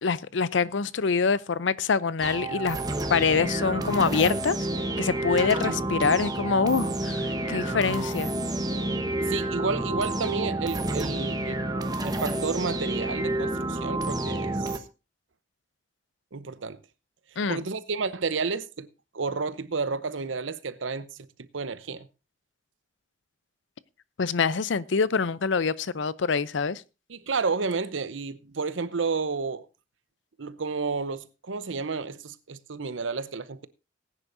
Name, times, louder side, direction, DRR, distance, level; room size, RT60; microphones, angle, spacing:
voice 1, 0.0-2.8 3.1-4.6 5.0-8.3 17.4-17.6 24.2-26.8, left 5 dB, 75° left, 0.6 m, -25 dB
sound 1, 2.2-14.8, right 1 dB, 20° right, 1.1 m, -29 dB
voice 2, 9.3-11.6 12.0-14.8 16.3-16.8 17.5-18.9 19.1-21.1 21.4-22.1 27.1-29.7 30.4-33.7, right 4 dB, 90° right, 0.8 m, -31 dB
19.0 x 9.9 x 2.6 m
head